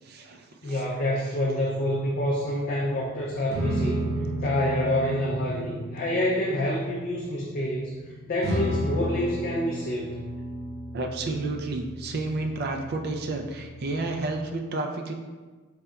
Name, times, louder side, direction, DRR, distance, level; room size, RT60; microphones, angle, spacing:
voice 1, 0.0-0.8 10.9-15.1, right 2 dB, 50° right, 3 dB, 0.4 m, -31 dB
voice 2, 0.6-4.1 4.4-10.2, left 1 dB, 45° left, -4 dB, 0.4 m, -27 dB
sound 1, 1.9-14.4, equal, 90° right, 1.2 m, -34 dB
4.0 x 3.4 x 2.2 m, 1.3 s
head